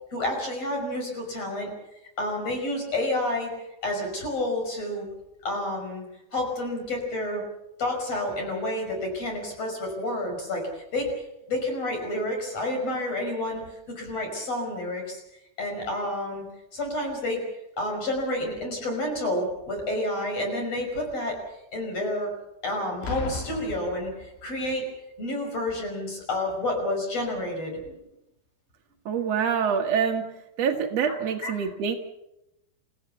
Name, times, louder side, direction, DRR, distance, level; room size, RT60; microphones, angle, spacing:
voice 1, 0.1-1.7 2.2-3.5 3.8-5.1 5.4-6.1 6.3-7.4 7.8-11.1 11.5-13.6 13.9-15.2 15.6-16.4 16.7-17.4 17.8-21.4 21.7-22.3 22.6-24.8 25.2-27.8 31.0-31.2 31.4-31.5, left 1 dB, 35° left, 3 dB, 6.4 m, -29 dB
Boom, 23.0-24.8 25.7-25.9, left 3 dB, 80° left, 4.9 m, -36 dB
voice 2, 29.0-30.2 30.6-32.0, right 7 dB, 80° right, 3 dB, 1.4 m, -25 dB
28.5 x 16.0 x 7.1 m, 0.87 s
omnidirectional pair, 5.1 m